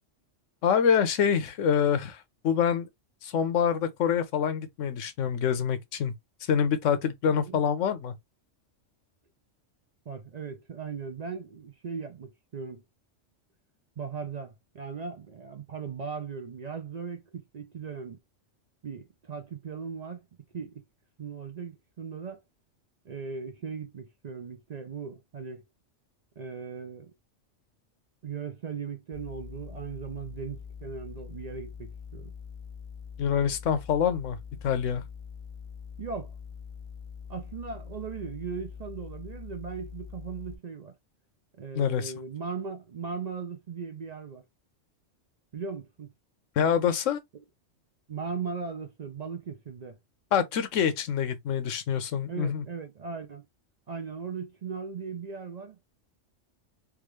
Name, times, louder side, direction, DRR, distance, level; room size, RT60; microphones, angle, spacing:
voice 1, 0.6-2.9 3.2-6.1 6.5-8.1 33.2-34.4 34.6-35.0 41.7-42.1 46.6-47.2 50.3-52.6, left 7 dB, 75° left, 1.0 m, -26 dB
voice 2, 10.1-12.8 14.0-18.2 18.8-20.2 20.5-20.8 21.2-22.4 23.1-25.6 26.4-27.1 28.2-32.3 36.0-36.3 37.3-40.9 41.6-44.4 45.5-46.1 48.1-50.0 52.3-53.5 53.9-55.8, right 5 dB, 60° right, 0.4 m, -38 dB
sound 1, 29.1-40.5, left 7 dB, 55° left, 0.3 m, -44 dB
3.5 x 2.3 x 3.0 m
omnidirectional pair, 1.3 m